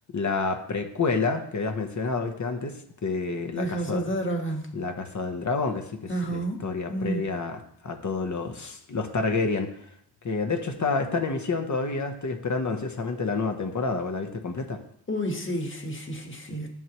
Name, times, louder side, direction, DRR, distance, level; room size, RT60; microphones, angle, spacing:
voice 1, 0.1-4.0 4.7-9.9 10.2-14.8, left 4 dB, 45° left, 5 dB, 1.0 m, -29 dB
voice 2, 3.5-4.7 6.1-6.6 6.9-7.3 8.6-8.7 15.1-16.7, right 1 dB, 30° left, 3 dB, 1.6 m, -30 dB
11.0 x 7.0 x 3.1 m, 0.69 s
wide cardioid pair, 110°, 40 cm